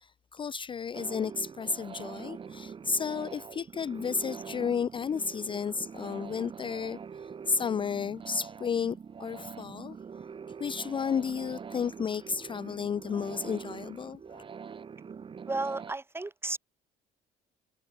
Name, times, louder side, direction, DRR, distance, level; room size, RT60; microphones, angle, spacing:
voice 1, 0.0-7.0 7.5-10.0 10.6-14.4, left 6 dB, 30° left, 0.4 m, -32 dB
sound 1, 0.9-15.9, right 6 dB, 30° right, 1.0 m, -44 dB
voice 2, 15.5-16.6, right 2 dB, 15° right, 1.6 m, -33 dB
cardioid pair, 110°, 17 cm